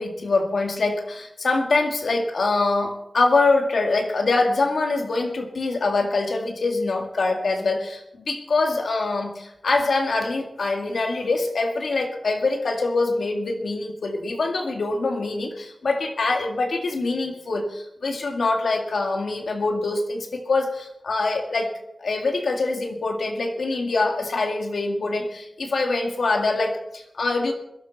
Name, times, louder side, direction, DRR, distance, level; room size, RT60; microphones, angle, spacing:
voice 1, 0.0-21.7 22.0-27.5, left 3 dB, 90° left, 3 dB, 2.0 m, -24 dB
21.0 x 12.5 x 4.1 m, 0.84 s
cardioid pair, 45°, 0 cm